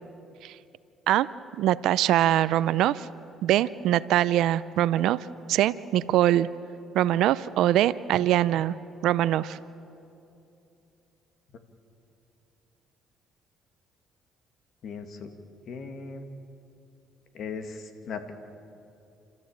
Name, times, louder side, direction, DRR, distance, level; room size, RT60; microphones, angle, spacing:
voice 1, 1.6-3.1 3.4-6.5 6.9-8.8 9.0-9.6, right 13 dB, 75° right, 17 dB, 0.5 m, -23 dB
voice 2, 14.8-15.3 15.7-16.3 17.3-18.3, left 5 dB, 60° left, 7 dB, 2.1 m, -38 dB
28.5 x 13.5 x 8.8 m, 2.7 s
cardioid pair, 85°, 0 cm